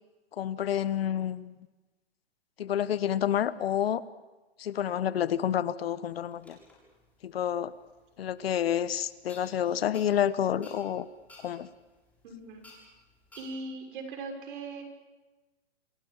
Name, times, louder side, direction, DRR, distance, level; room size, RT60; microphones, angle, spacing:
voice 1, 0.4-1.5 2.6-4.0 4.6-6.6 7.2-7.7 8.2-11.1 11.4-11.7, left 10 dB, 65° left, 15 dB, 1.2 m, -29 dB
sound 1, 6.1-13.6, left 2 dB, 5° left, 7.4 m, -58 dB
voice 2, 12.2-12.7 13.4-14.8, right 3 dB, 50° right, 4 dB, 6.4 m, -39 dB
28.0 x 21.0 x 7.2 m, 1.2 s
hypercardioid pair, 150°, 32 cm